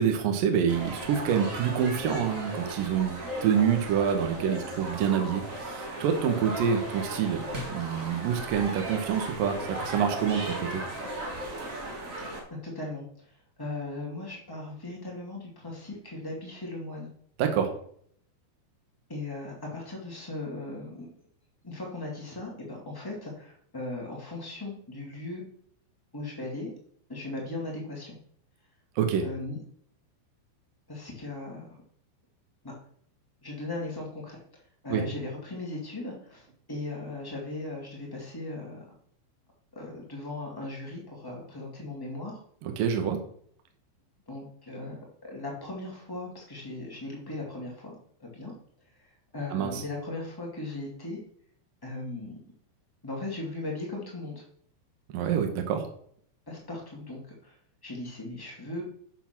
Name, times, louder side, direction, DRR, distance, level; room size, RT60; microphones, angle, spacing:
voice 1, 0.0-3.2 3.4-10.8 17.4-17.7 29.0-29.3 34.9-35.0 42.6-43.2 49.5-49.8 55.1-55.9, right 8 dB, 65° right, 5 dB, 2.3 m, -27 dB
sound 1, 0.7-12.4, right 1 dB, 85° right, 0.7 m, -36 dB
voice 2, 12.5-13.0 13.6-17.1 19.1-21.1 21.6-25.4 26.1-26.7 27.1-28.1 29.2-29.6 30.9-31.7 32.6-32.7 33.4-34.4 34.8-38.8 39.7-42.4 44.3-47.9 48.2-48.5 49.0-49.1 49.3-51.2 51.8-52.4 53.0-54.4 56.5-57.5 57.8-58.8, left 2 dB, 15° left, -2 dB, 0.7 m, -38 dB
8.3 x 6.9 x 6.0 m, 0.63 s
omnidirectional pair, 5.5 m